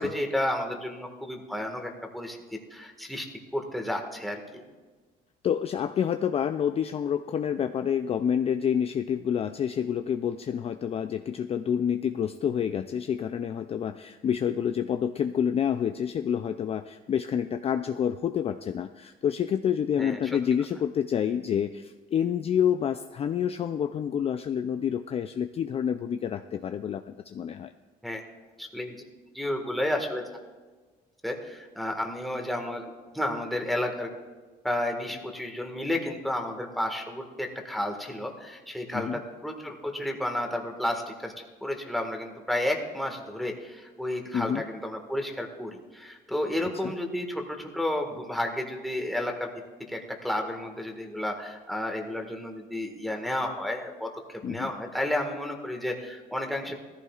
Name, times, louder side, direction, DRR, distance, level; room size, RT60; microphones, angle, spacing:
voice 1, 0.0-2.4 2.7-3.3 3.5-4.6 20.0-20.2 28.0-28.2 28.6-29.0 29.3-30.3 31.2-34.1 34.6-49.5 49.9-56.8, left 1 dB, ahead, 2 dB, 1.7 m, -32 dB
voice 2, 5.4-27.7 38.9-39.2 44.3-44.6 46.8-46.9 54.4-54.7, left 8 dB, 35° left, 8 dB, 0.4 m, -28 dB
16.5 x 14.5 x 2.4 m, 1.4 s
cardioid pair, 110°, 17 cm